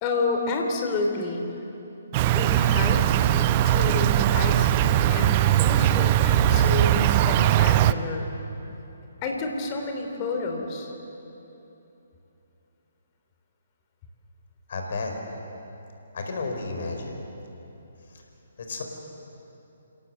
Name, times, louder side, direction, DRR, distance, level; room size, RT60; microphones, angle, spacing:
voice 1, 0.0-1.4 2.3-8.3 9.2-10.9, left 3 dB, 30° left, 3 dB, 3.3 m, -30 dB
Insect, 2.1-7.9, right 12 dB, 30° right, 0.7 m, -20 dB
voice 2, 14.7-15.2 16.1-17.2 18.6-18.8, left 3 dB, 55° left, 3 dB, 4.6 m, -32 dB
27.5 x 17.5 x 7.7 m, 2.9 s
figure-of-eight pair, 135°, 0 cm